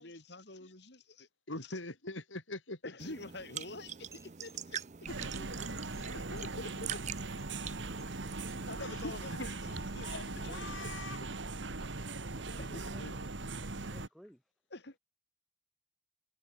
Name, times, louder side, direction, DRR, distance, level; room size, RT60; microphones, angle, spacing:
voice 1, 0.0-1.3 2.8-4.8 6.1-7.0 8.5-10.2 12.6-12.8 14.7-15.0, left 2 dB, 60° left, 3.6 m, -47 dB
voice 2, 1.5-3.1 5.1-5.9 6.3-6.9 8.8-11.2 12.8-13.3, left 2 dB, 90° left, 4.6 m, -45 dB
sound 1, 3.0-8.8, right 9 dB, 40° right, 0.6 m, -45 dB
sound 2, 4.1-9.3, right 4 dB, 15° right, 5.3 m, -60 dB
sound 3, 5.1-14.1, right 3 dB, 70° right, 1.7 m, -40 dB
voice 3, 13.9-14.4, equal, ahead, 5.5 m, -57 dB
head